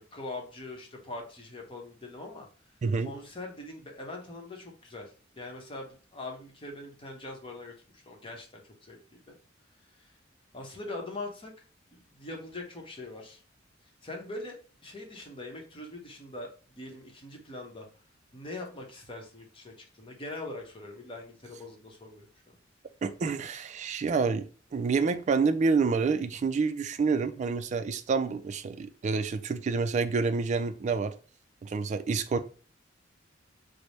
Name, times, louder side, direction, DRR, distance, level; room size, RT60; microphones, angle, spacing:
voice 1, 0.0-2.5 3.0-9.4 10.0-10.1 10.5-11.5 11.9-13.4 14.0-17.9 18.3-22.5, left 2 dB, 25° left, 1 dB, 0.8 m, -42 dB
voice 2, 2.8-3.1 23.0-24.5 24.7-31.1 31.6-32.4, right 4 dB, 35° right, 9 dB, 0.3 m, -28 dB
3.3 x 2.0 x 4.0 m, 0.37 s
head